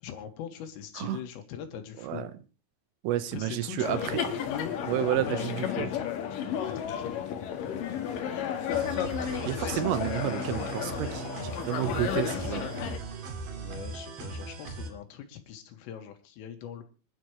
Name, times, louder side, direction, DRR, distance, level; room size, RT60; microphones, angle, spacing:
voice 1, 0.0-2.3 3.3-4.7 5.4-6.0 6.3-7.5 9.5-10.2 13.6-16.8, left 9 dB, 80° left, 4.5 m, -42 dB
voice 2, 3.0-4.2 4.9-5.9 9.5-12.6, right 13 dB, 80° right, 3.7 m, -30 dB
sound 1, 3.8-13.0, left 9 dB, 60° left, 2.5 m, -33 dB
sound 2, 8.7-14.9, right 4 dB, 50° right, 3.4 m, -39 dB
26.0 x 12.0 x 3.2 m
omnidirectional pair, 5.9 m